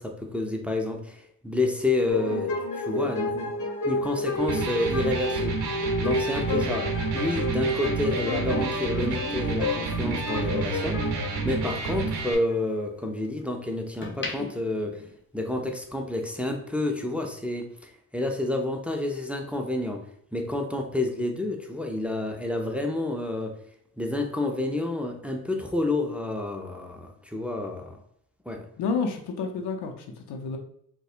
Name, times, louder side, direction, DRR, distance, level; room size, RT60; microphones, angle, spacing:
voice 1, 0.0-3.5 3.8-5.6 6.0-11.1 11.4-15.0 15.3-20.0 20.3-23.6 24.0-28.0 28.5-28.7, left 2 dB, 5° right, 3 dB, 0.5 m, -29 dB
sound 1, 2.1-12.6, left 2 dB, 50° left, 1.3 m, -30 dB
Electric guitar, 4.4-12.4, right 4 dB, 70° right, 0.7 m, -30 dB
sound 2, 9.8-11.5 11.9-13.3 13.8-15.9 16.2-16.5, left 2 dB, 30° left, 0.8 m, -41 dB
voice 2, 28.8-30.6, left 4 dB, 80° left, 4 dB, 0.7 m, -30 dB
4.1 x 2.2 x 2.4 m, 0.70 s
supercardioid pair, 45°, 40 cm